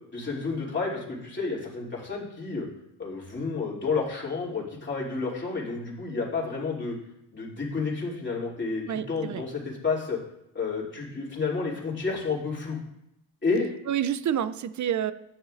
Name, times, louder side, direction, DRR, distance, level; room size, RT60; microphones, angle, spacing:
voice 1, 0.1-2.6 3.0-7.0 7.3-10.2 10.5-12.8 13.4-13.7, left 4 dB, 25° left, -5 dB, 2.9 m, -30 dB
voice 2, 8.9-9.4 13.9-15.1, right 9 dB, 40° right, 15 dB, 0.5 m, -28 dB
10.0 x 6.3 x 2.5 m, 0.82 s
hypercardioid pair, 50°, 45 cm